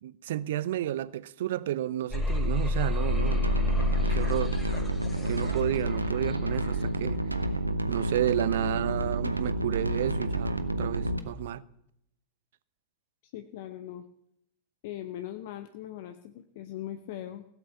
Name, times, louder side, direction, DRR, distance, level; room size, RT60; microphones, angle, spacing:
voice 1, 0.0-3.5 4.1-4.6 5.3-7.2 7.9-11.6, right 12 dB, 55° right, 0.6 m, -31 dB
sound 1, 2.1-7.2, left 2 dB, 15° left, 3.0 m, -30 dB
sound 2, 3.1-11.2, right 1 dB, 85° right, 0.9 m, -30 dB
voice 2, 13.3-14.0 14.8-17.5, left 12 dB, 50° left, 0.8 m, -40 dB
16.5 x 8.2 x 6.9 m
figure-of-eight pair, 90°, 0 cm